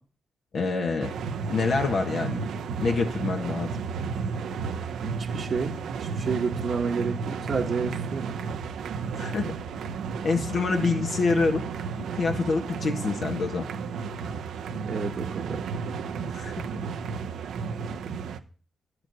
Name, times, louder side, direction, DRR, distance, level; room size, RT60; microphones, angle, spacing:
voice 1, 0.5-1.1 1.5-2.5 2.8-3.7 9.2-9.4 10.2-11.6 12.2-13.7 16.2-16.5, left 4 dB, 65° left, 1.5 m, -26 dB
sound 1, 1.0-18.4, right 5 dB, 85° right, 0.7 m, -33 dB
voice 2, 5.0-8.4 14.8-15.7, right 5 dB, 55° right, 1.1 m, -30 dB
11.0 x 4.8 x 8.0 m
cardioid pair, 80°, 0 cm